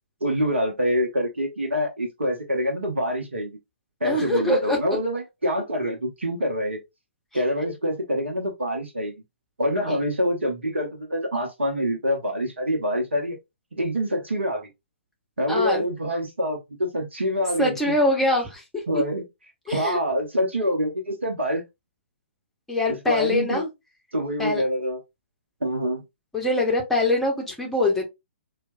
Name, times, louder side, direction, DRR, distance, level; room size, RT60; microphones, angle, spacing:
voice 1, 0.2-3.6 4.0-6.8 7.3-9.1 9.6-13.4 13.7-14.7 15.4-17.9 18.9-19.3 19.7-21.6 22.9-23.6 24.1-25.0 25.6-26.0, equal, 70° right, 0.8 m, -26 dB
voice 2, 4.0-4.8 7.6-7.7 9.9-10.0 15.5-15.8 17.6-19.0 19.7-20.0 22.7-23.7 24.4-24.6 26.3-28.1, left 2 dB, 5° left, 0.8 m, -24 dB
4.4 x 2.2 x 2.5 m
figure-of-eight pair, 125°, 7 cm